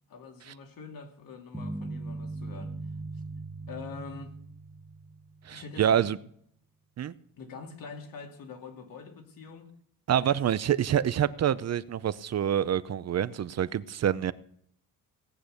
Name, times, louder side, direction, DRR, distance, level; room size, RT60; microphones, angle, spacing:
voice 1, 0.1-2.8 3.7-4.3 5.5-6.0 7.4-9.7 10.1-10.5, left 5 dB, 70° left, 2.9 m, -44 dB
sound 1, 1.5-5.7, right 2 dB, 5° right, 1.2 m, -39 dB
voice 2, 5.4-6.2 7.0-7.1 10.1-14.3, right 9 dB, 45° right, 0.6 m, -27 dB
18.0 x 8.7 x 6.5 m
cardioid pair, 130°, 35 cm